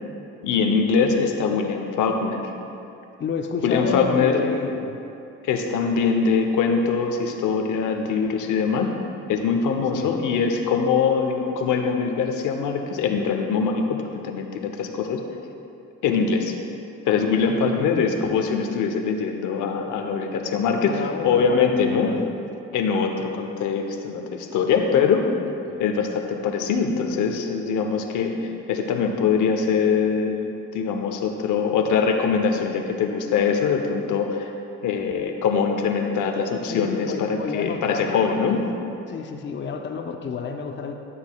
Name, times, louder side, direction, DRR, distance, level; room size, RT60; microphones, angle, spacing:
voice 1, 0.4-2.4 3.6-4.5 5.4-8.9 9.3-14.0 14.2-15.2 16.0-16.5 17.1-22.1 22.7-25.2 25.8-34.5 34.8-38.6, left 5 dB, 80° left, 3 dB, 0.8 m, -23 dB
voice 2, 3.2-5.0 9.9-10.1 17.5-18.0 20.8-22.3 25.7-25.8 36.7-38.7 39.1-40.9, left 5 dB, 40° left, 4 dB, 0.6 m, -31 dB
11.5 x 6.9 x 2.3 m, 2.7 s
cardioid pair, 90°, 30 cm